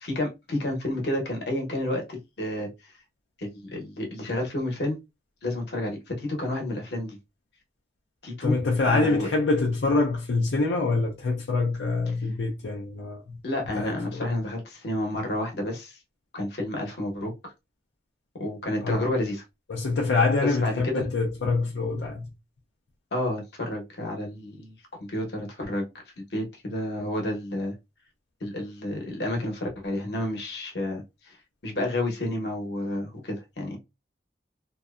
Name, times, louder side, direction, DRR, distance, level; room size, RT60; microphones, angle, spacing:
voice 1, 0.0-2.7 3.4-5.0 5.4-7.2 8.2-8.6 8.9-9.3 13.4-16.0 16.3-17.5 18.4-19.4 20.6-21.1 23.1-24.8 25.1-25.9 26.2-27.7 28.4-31.4 31.6-33.8, left 1 dB, 70° left, 0.9 m, -30 dB
voice 2, 8.4-13.4 13.7-14.4 18.8-19.1 19.7-22.3, left 3 dB, 90° left, 0.5 m, -25 dB
2.6 x 2.1 x 2.3 m
head